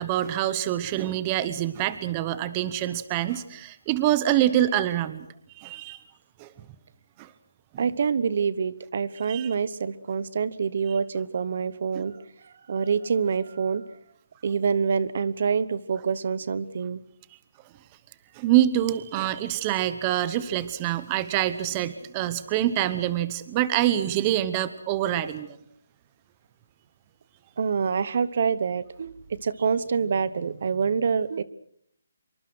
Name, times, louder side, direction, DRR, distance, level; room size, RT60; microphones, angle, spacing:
voice 1, 0.0-5.3 5.6-6.0 6.4-6.5 7.2-7.3 7.7-7.8 9.3-9.5 11.9-12.0 18.4-25.5, right 12 dB, 20° right, 14 dB, 0.9 m, -25 dB
voice 2, 7.8-12.2 12.7-13.8 14.4-17.0 27.6-31.4, right 6 dB, 45° right, 17 dB, 0.9 m, -26 dB
26.0 x 24.0 x 6.2 m, 0.67 s
hypercardioid pair, 170°, 0 cm